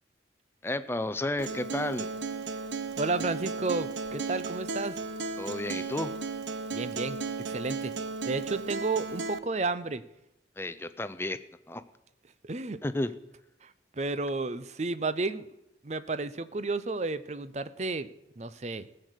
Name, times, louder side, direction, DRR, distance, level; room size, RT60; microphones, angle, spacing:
voice 1, 0.6-2.1 5.4-6.1 10.6-11.4 11.7-11.8 12.8-13.1, left 1 dB, 15° left, 12 dB, 0.5 m, -32 dB
Acoustic guitar, 1.4-9.4, right 4 dB, 90° right, 0.8 m, -35 dB
voice 2, 3.0-5.0 6.7-7.2 7.5-7.9 8.2-10.0 12.4-12.8 13.6-13.7 14.0-15.5 15.8-18.1 18.4-18.9, right 3 dB, 40° right, 14 dB, 0.6 m, -32 dB
16.0 x 6.6 x 8.1 m, 0.89 s
head